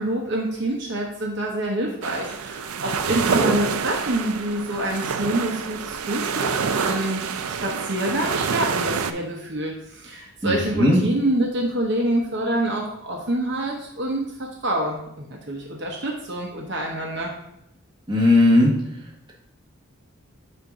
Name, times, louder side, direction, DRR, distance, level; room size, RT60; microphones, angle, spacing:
voice 1, 0.0-7.2 7.6-17.3, right 1 dB, 55° right, -1 dB, 0.9 m, -26 dB
sound 1, 2.0-9.1, right 6 dB, 85° right, 0.5 m, -27 dB
voice 2, 10.4-11.0 18.1-18.7, left 1 dB, 20° right, -4 dB, 1.3 m, -17 dB
7.9 x 2.6 x 4.8 m, 0.81 s
head